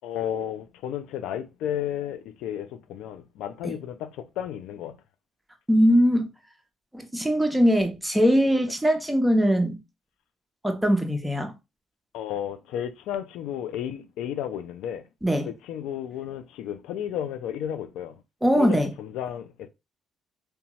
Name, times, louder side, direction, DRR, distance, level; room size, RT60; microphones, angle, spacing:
voice 1, 0.0-5.0 12.1-15.1 15.5-18.2 18.5-19.7, left 10 dB, 85° left, 0.3 m, -33 dB
voice 2, 5.7-6.3 6.9-9.8 10.6-11.5 15.2-15.5 18.4-18.9, equal, 5° right, 0.6 m, -21 dB
2.8 x 2.2 x 2.9 m
cardioid pair, 90°, 0 cm